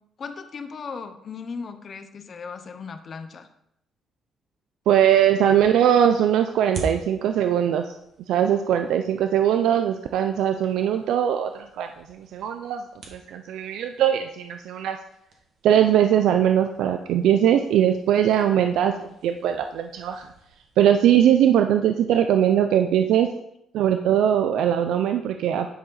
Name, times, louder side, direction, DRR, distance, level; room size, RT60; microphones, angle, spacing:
voice 1, 0.2-3.5, left 5 dB, 50° left, 8 dB, 0.9 m, -37 dB
voice 2, 4.9-7.9 8.3-12.8 13.1-15.0 15.6-18.9 19.2-20.3 20.8-23.3 23.7-25.7, right 10 dB, 85° right, 7 dB, 0.5 m, -20 dB
sound 1, 5.5-21.0, right 2 dB, 60° right, 1.9 m, -45 dB
10.0 x 5.0 x 4.0 m, 0.77 s
cardioid pair, 90°, 0 cm